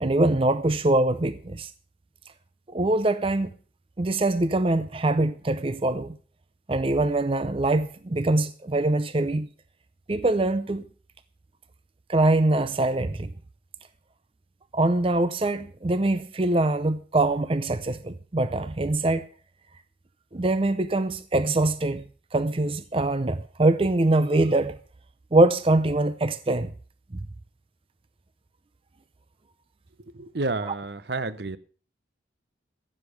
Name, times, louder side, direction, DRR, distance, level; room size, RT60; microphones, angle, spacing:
voice 1, 0.0-1.7 2.7-3.5 4.0-6.2 6.7-9.5 10.1-10.8 12.1-13.3 14.7-19.2 20.3-22.0 22.3-24.7 25.3-26.7 30.6-30.7, right 2 dB, 30° right, 0.6 m, -23 dB
voice 2, 30.1-31.6, right 3 dB, 60° right, 0.8 m, -30 dB
15.0 x 7.6 x 6.4 m
head